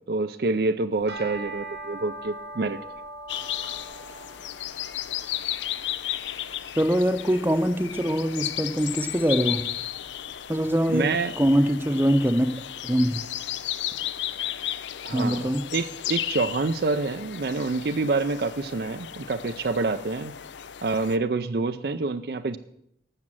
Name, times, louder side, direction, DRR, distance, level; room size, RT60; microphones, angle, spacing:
voice 1, 0.1-2.8 10.9-11.4 15.0-20.3 20.8-22.6, right 3 dB, 55° right, 9 dB, 0.5 m, -27 dB
sound 1, 0.9-10.3, right 2 dB, 85° right, 2.7 m, -43 dB
sound 2, 3.3-21.2, left 11 dB, 85° left, 0.6 m, -34 dB
voice 2, 6.8-9.7 10.5-11.0 11.4-12.5 12.8-13.1 15.1-15.6, equal, 10° right, 10 dB, 0.7 m, -23 dB
12.5 x 7.4 x 7.6 m, 0.76 s
head